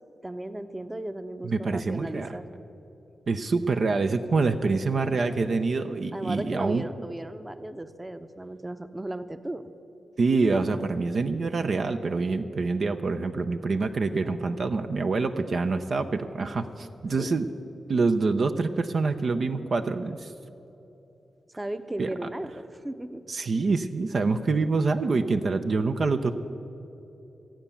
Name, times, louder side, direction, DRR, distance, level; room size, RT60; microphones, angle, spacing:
voice 1, 0.2-2.4 6.1-9.7 17.2-17.3 21.5-23.2, right 1 dB, 20° right, 11 dB, 0.8 m, -36 dB
voice 2, 1.4-2.4 3.3-6.9 10.2-17.5 17.9-20.3 22.0-22.1 23.3-26.3, right 3 dB, 65° right, 7 dB, 0.6 m, -26 dB
15.0 x 8.9 x 7.0 m, 3.0 s
supercardioid pair, 45°, 0 cm